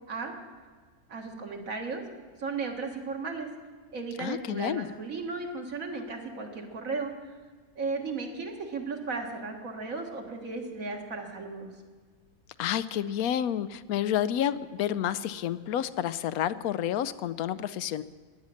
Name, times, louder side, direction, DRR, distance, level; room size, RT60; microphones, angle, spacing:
voice 1, 1.1-2.0 2.4-3.5 3.9-7.1 7.8-11.7, right 4 dB, 70° right, 2 dB, 2.0 m, -35 dB
voice 2, 4.2-4.9 12.6-18.0, left 10 dB, 85° left, 14 dB, 1.1 m, -29 dB
15.5 x 10.5 x 6.4 m, 1.5 s
omnidirectional pair, 1.5 m